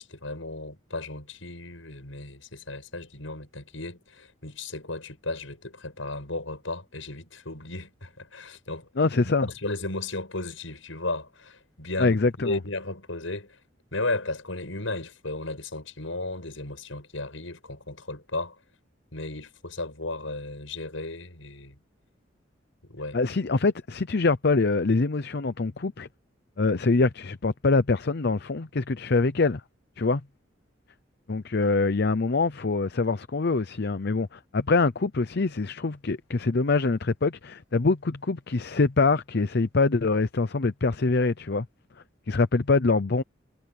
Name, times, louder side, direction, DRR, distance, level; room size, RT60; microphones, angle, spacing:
voice 1, 0.0-8.9 9.4-13.6 13.9-18.6 19.1-21.8 22.8-23.2 23.5-23.6, left 2 dB, 85° left, 6.9 m, -35 dB
voice 2, 9.0-9.5 12.0-12.6 23.1-26.1 26.6-29.6 30.0-30.2 31.3-41.7 42.3-43.2, left 3 dB, 55° left, 0.7 m, -24 dB
head